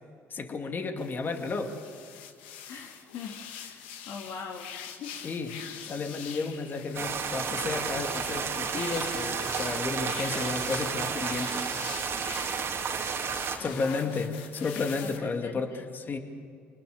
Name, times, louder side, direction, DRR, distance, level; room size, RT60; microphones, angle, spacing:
voice 1, 0.3-1.7 5.2-5.5 5.8-11.6 13.6-16.2, left 4 dB, 35° left, 5 dB, 2.6 m, -32 dB
sound 1, 1.0-15.2, left 8 dB, 90° left, 1.7 m, -44 dB
voice 2, 2.7-5.2 13.6-14.1 15.0-16.2, left 6 dB, 60° left, 2 dB, 2.0 m, -43 dB
sound 2, 6.9-13.6, right 6 dB, 50° right, 2.6 m, -32 dB
25.5 x 20.0 x 6.8 m, 2.3 s
supercardioid pair, 75°, 6 cm